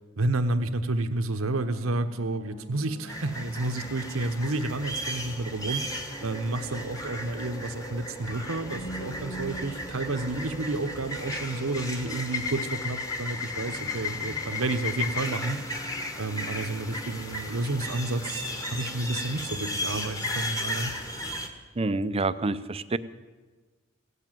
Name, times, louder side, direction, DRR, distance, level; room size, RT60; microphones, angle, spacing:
voice 1, 0.2-15.6 16.2-18.4 18.7-20.9, right 2 dB, 75° right, 8 dB, 1.0 m, -30 dB
sound 1, 1.3-20.8, left 1 dB, 40° left, 3.5 m, -50 dB
sound 2, 3.1-21.5, left 1 dB, 15° left, 1.4 m, -35 dB
voice 2, 21.8-23.0, right 3 dB, 30° right, 13 dB, 0.5 m, -27 dB
16.5 x 8.4 x 9.0 m, 1.3 s
head